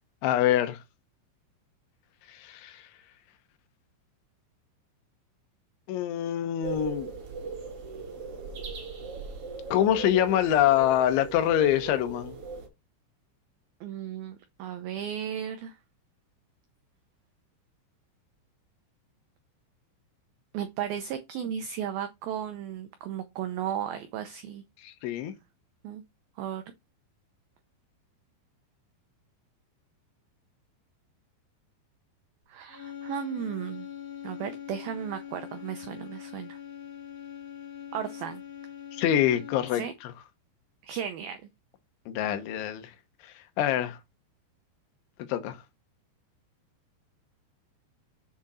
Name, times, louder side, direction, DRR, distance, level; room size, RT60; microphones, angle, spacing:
voice 1, 0.2-0.8 2.3-2.8 5.9-7.1 9.7-12.4 24.8-25.3 38.9-40.1 42.1-42.9 43.6-44.0 45.2-45.6, left 11 dB, 85° left, 3.4 m, -25 dB
sound 1, 6.6-12.7, right 4 dB, 45° right, 2.4 m, -38 dB
voice 2, 13.8-15.8 20.5-24.6 25.8-26.0 26.4-26.6 32.5-33.9 34.2-36.6 37.9-38.4 39.7-39.9 40.8-41.5, right 9 dB, 90° right, 2.1 m, -35 dB
sound 2, 32.7-39.9, left 10 dB, 60° left, 3.1 m, -42 dB
7.7 x 6.1 x 4.2 m
omnidirectional pair, 5.3 m